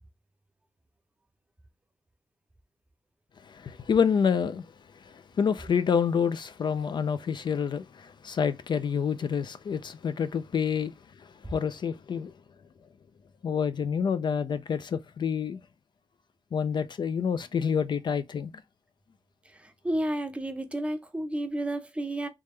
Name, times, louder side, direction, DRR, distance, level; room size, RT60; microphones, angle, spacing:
voice 1, 3.4-4.7 4.9-12.3 13.4-15.6 16.5-18.5, left 7 dB, 50° left, 0.3 m, -28 dB
voice 2, 19.8-22.3, right 1 dB, 10° right, 0.6 m, -31 dB
3.5 x 3.3 x 3.0 m
wide cardioid pair, 150°, 10 cm